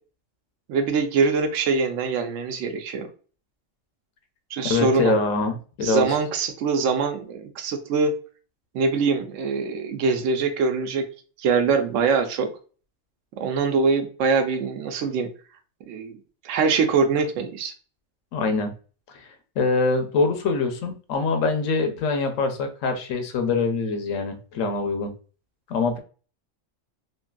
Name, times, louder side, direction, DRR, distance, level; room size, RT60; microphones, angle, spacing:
voice 1, 0.7-3.1 4.5-5.1 5.8-8.1 8.7-11.0 11.4-12.5 13.4-15.3 15.9-16.2 16.4-17.7, right 4 dB, 75° right, 7 dB, 0.9 m, -23 dB
voice 2, 4.7-6.1 18.3-18.7 19.1-25.1 25.7-26.0, left 3 dB, 85° left, 6 dB, 1.0 m, -24 dB
3.1 x 2.6 x 2.2 m, 0.38 s
omnidirectional pair, 1.3 m